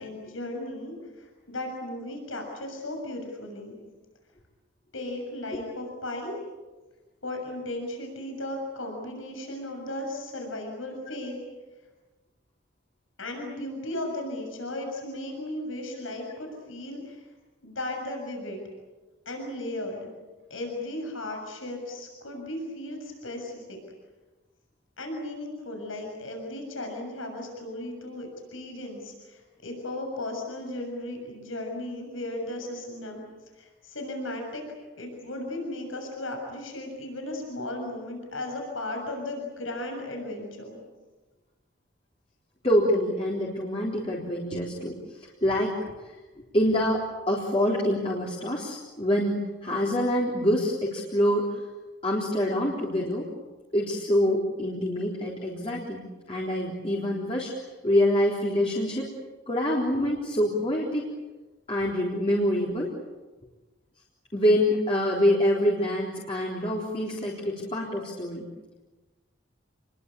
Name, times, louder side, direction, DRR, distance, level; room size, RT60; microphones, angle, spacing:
voice 1, 0.0-3.7 4.9-6.3 7.2-11.4 13.2-17.2 17.6-18.6 19.3-20.1 20.5-23.8 25.0-33.2 33.6-34.6 35.0-40.8, left 1 dB, 90° left, 3 dB, 6.9 m, -36 dB
voice 2, 42.6-45.8 46.0-46.1 46.5-51.6 52.0-53.3 53.7-59.1 59.5-61.1 61.7-62.9 64.3-68.5, equal, 30° left, -3 dB, 3.7 m, -26 dB
29.0 x 22.5 x 8.5 m, 1.2 s
head